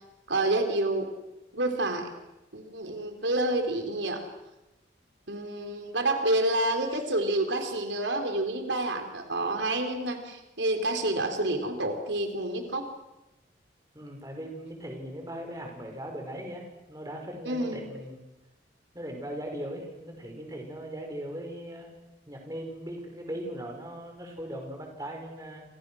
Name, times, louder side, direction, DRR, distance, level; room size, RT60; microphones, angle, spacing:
voice 1, 0.3-1.1 1.5-2.1 2.5-4.3 5.3-12.9 17.5-17.8, right 1 dB, 85° right, 5 dB, 3.9 m, -28 dB
voice 2, 13.9-18.2 18.9-22.0 22.3-25.6, right 1 dB, 20° right, 2 dB, 5.6 m, -39 dB
28.5 x 27.5 x 6.4 m, 0.98 s
head